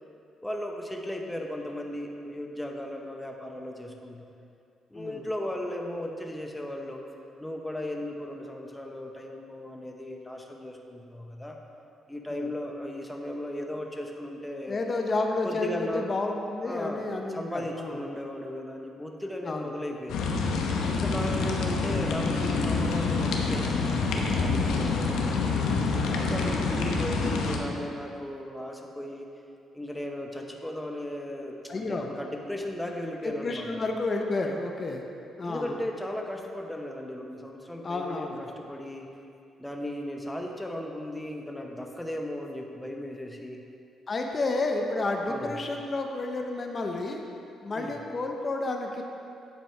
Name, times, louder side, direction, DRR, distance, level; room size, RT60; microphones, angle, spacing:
voice 1, 0.4-4.3 4.9-7.0 7.4-11.6 12.1-14.8 15.4-16.1 16.6-17.0 17.3-20.2 20.8-25.7 26.2-29.3 29.7-33.8 35.4-39.1 39.6-43.6 45.3-45.6 47.7-48.0, left 1 dB, 5° left, 1 dB, 0.8 m, -36 dB
voice 2, 4.9-5.3 12.3-12.5 14.7-18.0 19.4-19.7 20.9-21.3 31.7-32.1 33.2-35.0 35.4-35.8 37.8-38.4 44.1-47.2 47.6-49.0, left 2 dB, 35° left, 2 dB, 0.7 m, -31 dB
sound 1, 20.1-27.6, left 4 dB, 85° left, 0.9 m, -27 dB
9.4 x 7.5 x 3.3 m, 2.6 s
cardioid pair, 90°, 0 cm